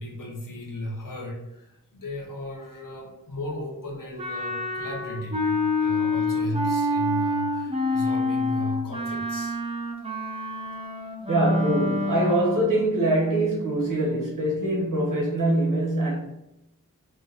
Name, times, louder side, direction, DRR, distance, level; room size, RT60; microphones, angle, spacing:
voice 1, 0.0-9.6, left 1 dB, 75° left, 0.9 m, -35 dB
Wind instrument woodwind instrument, 4.2-12.8, left 2 dB, 20° right, 0.8 m, -27 dB
voice 2, 11.3-16.2, right 1 dB, 70° right, 1.3 m, -23 dB
3.0 x 2.1 x 3.9 m
cardioid pair, 40°, 33 cm